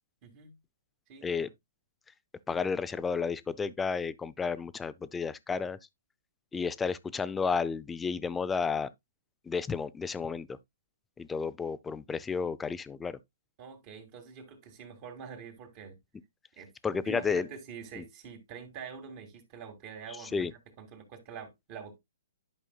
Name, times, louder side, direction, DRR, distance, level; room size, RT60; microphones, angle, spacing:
voice 1, 0.2-0.5 1.1-1.5 13.6-16.0 16.6-16.7 17.1-20.5 20.8-22.0, right 6 dB, 35° right, 2.5 m, -45 dB
voice 2, 2.5-5.8 6.5-8.9 9.5-10.6 11.2-13.2 16.8-17.5 18.0-18.1 20.2-20.5, left 5 dB, 10° left, 0.5 m, -32 dB
11.0 x 5.5 x 2.3 m
hypercardioid pair, 140°, 0 cm